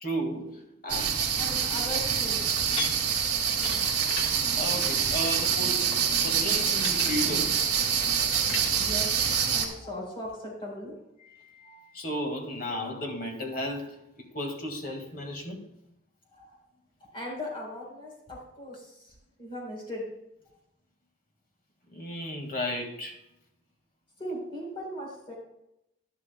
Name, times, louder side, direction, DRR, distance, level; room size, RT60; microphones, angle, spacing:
voice 1, 0.0-1.2 4.6-7.6 11.6-15.6 21.9-23.2, equal, 45° left, 3 dB, 1.9 m, -34 dB
sound 1, 0.9-9.7, right 7 dB, 55° right, 2.2 m, -26 dB
voice 2, 1.4-2.4 8.7-9.1 9.5-10.9 16.3-16.6 17.1-19.1 19.4-20.0 24.2-25.3, left 1 dB, 25° left, -2 dB, 4.2 m, -38 dB
sound 2, 2.7-8.7, left 4 dB, 90° left, 1.6 m, -40 dB
12.0 x 11.5 x 2.3 m, 0.82 s
head